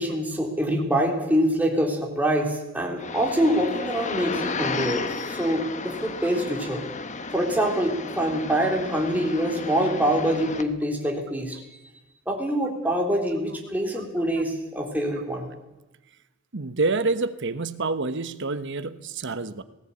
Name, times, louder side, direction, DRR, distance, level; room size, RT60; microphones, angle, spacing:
voice 1, 0.0-6.8 7.3-11.6 12.3-15.5, equal, 10° right, 0 dB, 3.5 m, -25 dB
sound 1, 3.0-10.6, left 4 dB, 35° left, 1.2 m, -33 dB
voice 2, 16.5-19.6, right 3 dB, 55° right, 12 dB, 1.1 m, -27 dB
18.5 x 17.0 x 8.6 m, 1.0 s
head